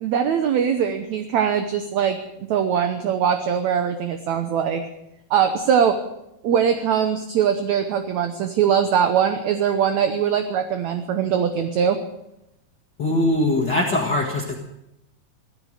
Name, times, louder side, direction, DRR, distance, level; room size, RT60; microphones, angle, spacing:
voice 1, 0.0-2.2 2.5-4.8 5.3-6.0 6.4-12.0, right 8 dB, 70° right, 7 dB, 1.8 m, -21 dB
voice 2, 13.0-14.6, left 1 dB, 35° left, -1 dB, 1.9 m, -21 dB
16.5 x 13.5 x 6.6 m, 0.84 s
omnidirectional pair, 4.3 m